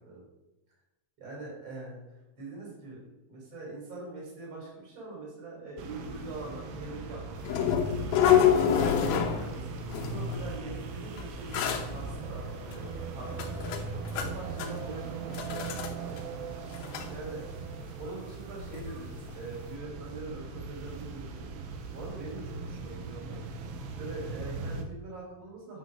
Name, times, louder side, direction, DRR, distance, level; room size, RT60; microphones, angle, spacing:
voice 1, 1.2-2.0 2.4-3.0 3.3-8.1 8.6-9.8 10.1-13.6 13.9-16.2 17.1-17.4 18.0-21.6 21.9-23.4 23.9-25.8, right 2 dB, 30° right, -3 dB, 3.5 m, -43 dB
sound 1, 5.8-24.8, right 4 dB, 80° right, 2.2 m, -39 dB
sound 2, 7.4-9.6 9.9-10.4 11.2-11.3 11.5-11.9 12.7-12.8 13.3-14.3 14.6-14.9 15.3-15.9 16.2-16.3 16.6-17.1 18.7-18.8 19.3-19.4, left 9 dB, 85° left, 2.1 m, -26 dB
9.3 x 5.4 x 5.9 m, 0.97 s
omnidirectional pair, 5.5 m